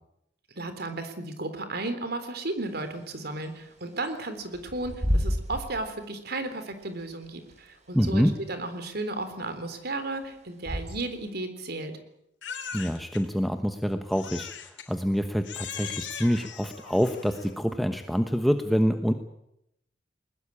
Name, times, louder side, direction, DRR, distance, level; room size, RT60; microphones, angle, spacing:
voice 1, 0.6-11.9, right 2 dB, 60° right, 9 dB, 3.7 m, -34 dB
Bird / Wind, 2.6-11.3, equal, 40° right, 5.7 m, -34 dB
voice 2, 7.9-8.3 12.7-19.1, equal, ahead, 6 dB, 1.1 m, -26 dB
Crying sobbing, 12.4-13.2 14.1-14.9 15.4-17.6, left 7 dB, 75° left, 3.9 m, -39 dB
21.0 x 21.0 x 8.6 m, 0.79 s
head